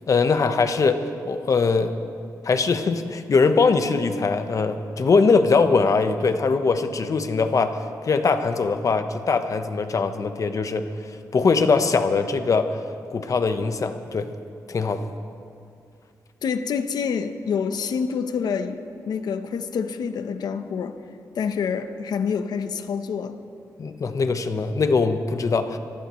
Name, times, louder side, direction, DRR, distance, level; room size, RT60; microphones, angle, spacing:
voice 1, 0.1-1.9 2.4-7.8 8.1-10.9 11.3-12.8 13.1-14.3 14.7-15.0 23.8-25.8, left 4 dB, 50° left, 1.0 m, -21 dB
voice 2, 16.4-21.0 21.3-23.4, left 6 dB, 75° left, 0.9 m, -27 dB
25.0 x 15.5 x 3.1 m
cardioid pair, 70°, 7 cm